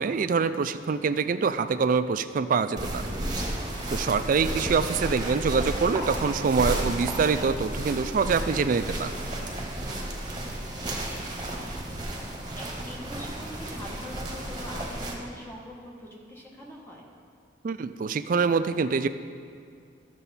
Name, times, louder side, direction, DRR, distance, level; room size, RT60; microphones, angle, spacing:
voice 1, 0.0-3.1 3.9-9.1 17.6-19.1, right 5 dB, 45° right, 11 dB, 0.3 m, -25 dB
sound 1, 2.8-15.1, right 1 dB, 20° right, 1.2 m, -33 dB
voice 2, 5.2-5.6 10.6-11.8 12.5-17.1, left 1 dB, 10° left, -2 dB, 1.2 m, -43 dB
12.0 x 6.9 x 4.2 m, 2.2 s
head